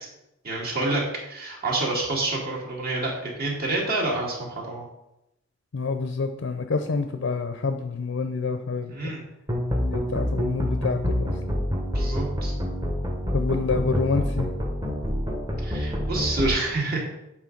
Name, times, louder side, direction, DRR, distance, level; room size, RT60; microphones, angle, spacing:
voice 1, 0.4-4.9 8.9-9.2 11.9-12.5 15.6-17.0, right 2 dB, 50° right, -3 dB, 2.0 m, -28 dB
voice 2, 5.7-9.1 9.7-11.4 13.3-14.5, left 4 dB, 65° left, 7 dB, 0.5 m, -27 dB
sound 1, 9.5-16.5, equal, 20° right, 0.9 m, -27 dB
7.4 x 3.6 x 5.1 m, 0.86 s
head